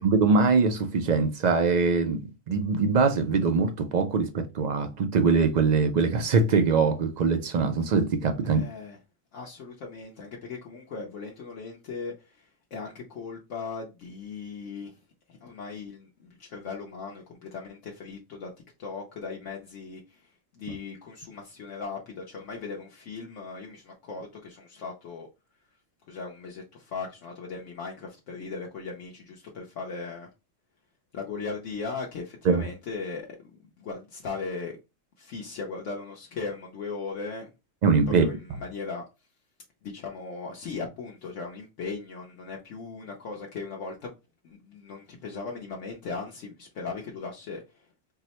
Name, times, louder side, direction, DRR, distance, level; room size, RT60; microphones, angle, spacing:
voice 1, 0.0-2.2 2.5-8.6 32.5-32.6 37.8-38.3, right 4 dB, 75° right, 0.4 m, -23 dB
voice 2, 8.4-9.0 9.3-18.5 18.8-25.3 26.0-30.3 31.1-34.8 35.2-37.5 38.2-39.3 39.8-44.2 44.4-47.9, left 4 dB, 70° left, 1.1 m, -38 dB
4.5 x 2.1 x 2.8 m
omnidirectional pair, 1.3 m